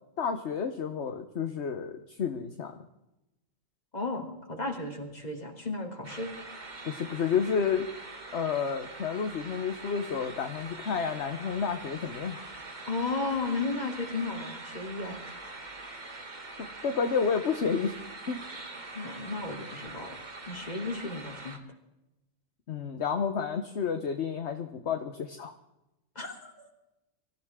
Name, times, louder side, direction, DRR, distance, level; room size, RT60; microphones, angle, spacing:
voice 1, 0.2-2.7 6.8-7.9 8.3-12.5 16.8-18.0 18.3-18.4 22.7-25.5, left 6 dB, 60° left, 6 dB, 1.3 m, -30 dB
voice 2, 3.9-6.3 12.9-15.4 18.9-20.2 20.5-21.6 26.1-26.7, left 3 dB, 35° left, 2 dB, 3.0 m, -34 dB
sound 1, 6.0-21.6, right 2 dB, 35° right, 1.7 m, -43 dB
24.5 x 14.5 x 3.7 m, 0.94 s
omnidirectional pair, 1.3 m